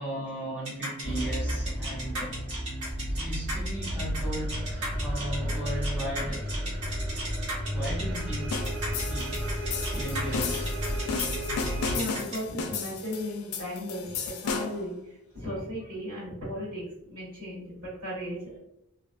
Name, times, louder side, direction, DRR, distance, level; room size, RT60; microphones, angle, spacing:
voice 1, 0.0-2.4 3.1-6.5 7.5-8.6 9.1-10.7, right 1 dB, 5° right, -6 dB, 0.6 m, -37 dB
sound 1, 0.6-12.4, right 1 dB, 90° right, 1.1 m, -36 dB
sound 2, 1.0-12.0, equal, 55° right, 0.8 m, -32 dB
sound 3, 8.5-14.9, left 5 dB, 90° left, 0.3 m, -34 dB
voice 2, 11.5-18.6, equal, 70° right, -9 dB, 1.5 m, -37 dB
2.5 x 2.2 x 2.4 m, 0.82 s
head